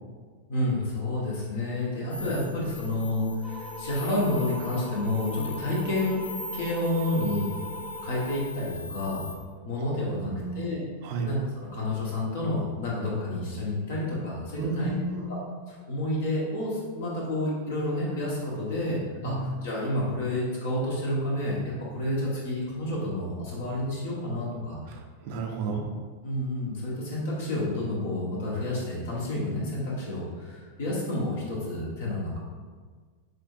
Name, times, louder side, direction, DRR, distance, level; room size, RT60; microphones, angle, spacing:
voice 1, 0.5-6.2 6.5-7.5 8.0-9.3 9.6-10.8 11.2-14.9 15.3-15.4 15.7-24.8 26.2-32.4, left 1 dB, 60° left, -5 dB, 1.3 m, -30 dB
sound 1, 2.1-9.3, left 2 dB, 90° left, 0.4 m, -41 dB
sound 2, 3.4-8.4, equal, ahead, 0.7 m, -41 dB
voice 2, 9.9-10.7 11.0-11.3 14.6-15.3 19.2-19.5 24.9-25.8, right 3 dB, 50° right, 1 dB, 0.6 m, -33 dB
6.3 x 2.6 x 2.6 m, 1.6 s
figure-of-eight pair, 90°, 0 cm